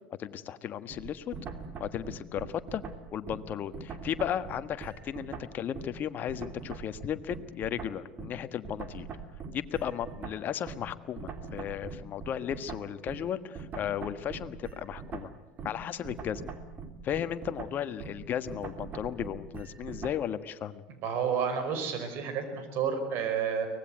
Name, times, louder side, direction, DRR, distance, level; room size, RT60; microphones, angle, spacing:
voice 1, 0.2-1.3 1.8-2.8 3.1-9.1 9.5-15.3 15.6-16.5 17.0-20.8, left 9 dB, 45° left, 11 dB, 1.4 m, -35 dB
sound 1, 0.9-6.0 6.3-20.3, right 5 dB, 40° right, 3.0 m, -42 dB
voice 2, 21.0-23.7, right 7 dB, 55° right, 8 dB, 5.7 m, -30 dB
24.5 x 19.0 x 9.3 m, 1.0 s
hypercardioid pair, 80°, 4 cm